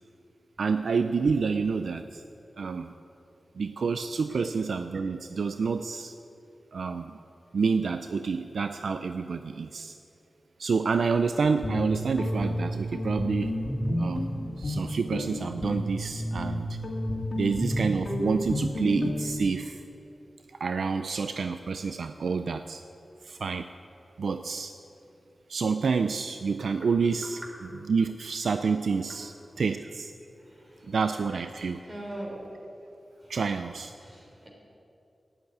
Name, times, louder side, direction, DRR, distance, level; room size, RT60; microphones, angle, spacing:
voice 1, 0.6-2.2 2.6-2.9 3.6-6.1 6.7-7.2 7.5-9.9 10.6-13.6 14.0-14.3 14.6-16.8 17.4-19.8 20.6-22.8 23.3-23.7 24.2-24.7 25.5-27.4 27.9-30.1 30.9-31.8 33.3-33.9, right 5 dB, 85° right, 9 dB, 0.4 m, -28 dB
Guitar, 11.4-19.4, left 1 dB, 50° left, 2.3 m, -31 dB
voice 2, 30.4-31.0 31.6-32.5 33.2-33.3 34.0-34.5, right 1 dB, 30° right, -2 dB, 3.5 m, -42 dB
11.5 x 8.8 x 9.3 m, 2.8 s
wide cardioid pair, 105°, 0 cm